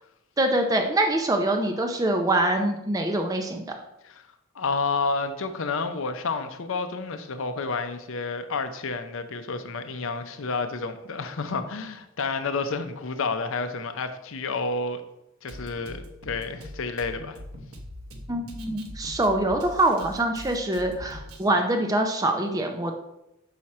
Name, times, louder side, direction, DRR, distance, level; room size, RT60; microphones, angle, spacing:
voice 1, 0.4-3.6 18.3-22.9, right 1 dB, 15° right, 3 dB, 0.5 m, -24 dB
voice 2, 4.5-15.0 15.4-17.4, left 4 dB, 65° left, 9 dB, 0.6 m, -30 dB
Drum kit, 15.5-21.5, left 1 dB, 80° right, 0.9 m, -42 dB
6.3 x 5.7 x 4.2 m, 0.87 s
head